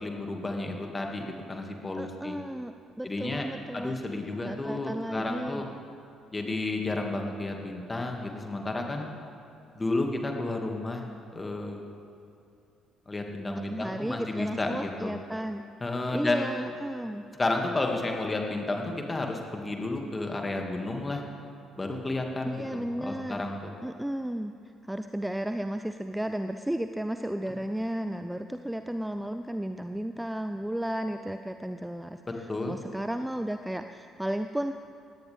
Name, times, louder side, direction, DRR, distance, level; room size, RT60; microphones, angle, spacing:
voice 1, 0.0-2.4 3.0-3.5 3.7-5.7 6.3-9.1 9.8-11.1 11.3-11.8 13.1-15.1 15.8-16.5 17.4-21.2 21.8-23.7 27.5-27.6 32.5-32.8, left 2 dB, 20° left, 2 dB, 2.3 m, -32 dB
voice 2, 2.0-2.7 3.0-4.0 4.4-5.6 13.7-15.6 16.1-17.2 22.4-23.5 23.8-24.5 24.8-34.7, right 1 dB, 5° right, 8 dB, 0.6 m, -33 dB
21.0 x 17.5 x 3.6 m, 2.6 s
figure-of-eight pair, 45°, 0 cm